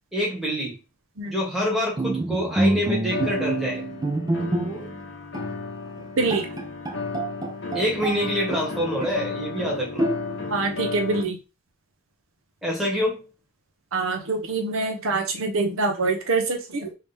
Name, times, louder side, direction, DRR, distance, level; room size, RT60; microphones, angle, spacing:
voice 1, 0.1-0.8 1.3-3.8 7.7-10.1 12.6-13.3, equal, ahead, 1.2 m, -26 dB
Bowed string instrument, 2.0-5.0 5.3-5.5 6.0-6.1 6.3-8.2 8.5-9.3 10.0-10.6, right 2 dB, 15° right, 0.3 m, -27 dB
sound 1, 3.1-11.2, left 4 dB, 55° left, 0.8 m, -33 dB
voice 2, 6.2-6.5 10.5-11.4 13.9-16.9, right 3 dB, 70° right, 0.6 m, -25 dB
3.1 x 2.8 x 3.3 m
head